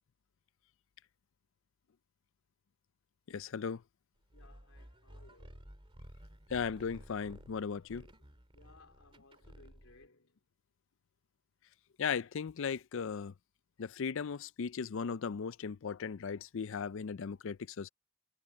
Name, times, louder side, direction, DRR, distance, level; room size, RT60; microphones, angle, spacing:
voice 1, 3.3-3.8 6.5-8.1 12.0-13.3 13.8-17.9, left 6 dB, 65° left, 0.5 m, -37 dB
voice 2, 4.3-5.7 8.5-10.4, left 3 dB, 80° left, 3.5 m, -62 dB
sound 1, 4.3-10.1, equal, 25° right, 2.4 m, -55 dB
head